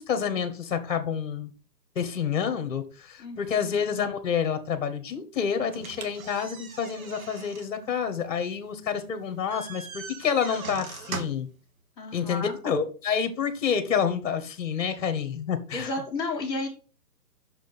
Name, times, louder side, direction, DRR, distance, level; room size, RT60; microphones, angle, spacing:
voice 1, 0.0-1.5 1.9-11.5 12.1-15.9, left 7 dB, 50° left, 1.3 m, -28 dB
voice 2, 3.2-3.6 12.0-12.5 15.7-16.7, left 2 dB, 10° left, 1.5 m, -32 dB
sound 1, 5.7-11.6, right 5 dB, 55° right, 1.4 m, -41 dB
6.0 x 5.1 x 5.5 m
hypercardioid pair, 160°, 49 cm